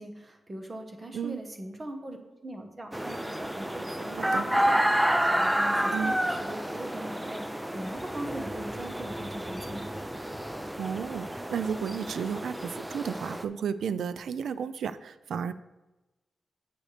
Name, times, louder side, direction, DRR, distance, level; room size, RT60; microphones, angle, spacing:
voice 1, 0.0-2.2 2.4-4.8 5.4-9.9, right 1 dB, 20° right, 4 dB, 1.1 m, -40 dB
sound 1, 2.9-13.4, equal, 5° right, 0.4 m, -30 dB
voice 2, 4.1-4.4 5.9-6.2 10.8-15.5, right 7 dB, 85° right, 13 dB, 0.4 m, -33 dB
9.1 x 7.8 x 3.4 m, 1.1 s
wide cardioid pair, 175°, 0 cm